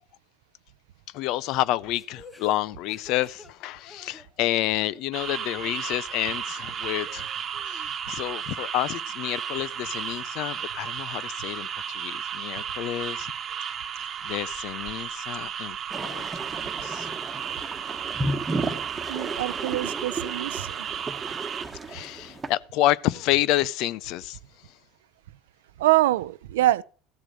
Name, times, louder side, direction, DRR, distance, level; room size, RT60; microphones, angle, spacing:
voice 1, 1.1-7.3 7.7-13.3 14.2-15.8 16.0-16.2 16.8-17.1 21.9-24.4, left 15 dB, 65° left, 0.4 m, -29 dB
sound 1, 2.0-4.5 4.8-5.3 5.6-5.7 6.3-6.4 6.9-7.9 8.3-10.2, left 2 dB, 20° left, 2.6 m, -50 dB
sound 2, 5.1-21.7, right 8 dB, 40° right, 1.1 m, -34 dB
sound 3, 15.9-22.5, right 2 dB, 20° right, 1.3 m, -33 dB
voice 2, 19.1-20.9 25.8-26.8, right 16 dB, 90° right, 0.4 m, -24 dB
14.5 x 5.0 x 7.5 m
supercardioid pair, 95°, 0 cm